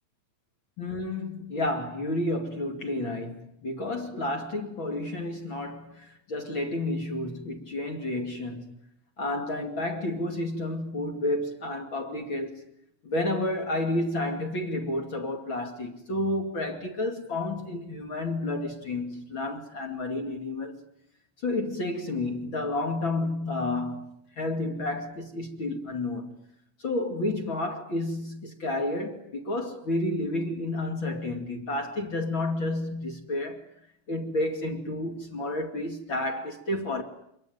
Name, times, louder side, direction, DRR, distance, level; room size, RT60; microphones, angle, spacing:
voice 1, 0.8-8.7 9.2-12.6 13.0-20.7 21.4-26.3 26.8-33.6 34.1-37.0, left 2 dB, 40° left, 3.1 m, -31 dB
26.5 x 22.5 x 9.3 m
omnidirectional pair, 3.6 m